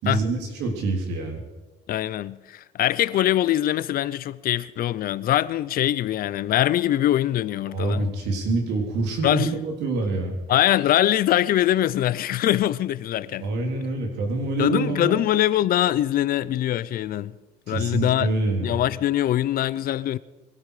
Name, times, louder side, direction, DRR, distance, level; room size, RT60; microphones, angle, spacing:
voice 1, 0.0-1.4 7.7-10.4 13.4-15.2 17.7-18.7, right 3 dB, 85° right, 3.6 m, -26 dB
voice 2, 1.9-8.1 9.2-9.5 10.5-13.5 14.6-17.3 17.7-18.3 18.6-20.2, left 12 dB, 60° left, 0.6 m, -23 dB
22.0 x 13.0 x 5.0 m
cardioid pair, 110°, 17 cm